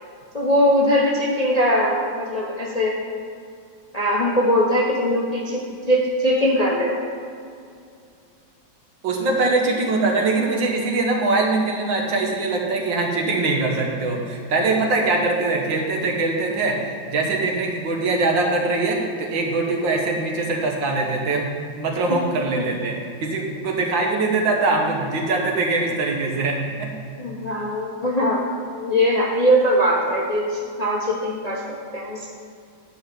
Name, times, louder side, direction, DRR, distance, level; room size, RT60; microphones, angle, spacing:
voice 1, 0.3-2.9 3.9-5.6 5.9-7.0 22.1-22.2 22.6-22.7 27.2-28.4 28.7-31.6 31.9-32.3, equal, 30° left, -3 dB, 0.7 m, -21 dB
voice 2, 9.0-21.5 21.8-26.9, right 3 dB, 75° right, 1 dB, 1.9 m, -22 dB
10.5 x 4.8 x 6.8 m, 2.3 s
omnidirectional pair, 2.1 m